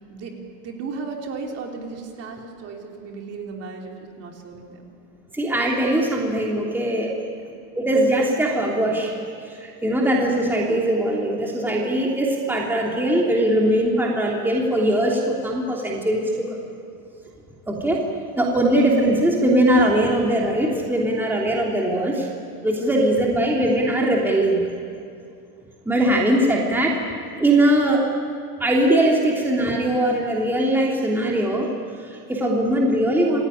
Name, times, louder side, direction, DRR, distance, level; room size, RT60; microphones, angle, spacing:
voice 1, 0.0-4.8 7.2-7.6, right 4 dB, 30° right, 1 dB, 3.5 m, -35 dB
voice 2, 5.3-7.2 7.7-9.1 9.5-16.6 17.7-18.0 18.4-22.3 22.6-24.6 25.8-27.0 27.4-28.1 28.6-31.7 32.0-33.4, right 1 dB, 5° right, -2 dB, 3.1 m, -21 dB
28.0 x 17.5 x 10.0 m, 2.4 s
supercardioid pair, 140°, 48 cm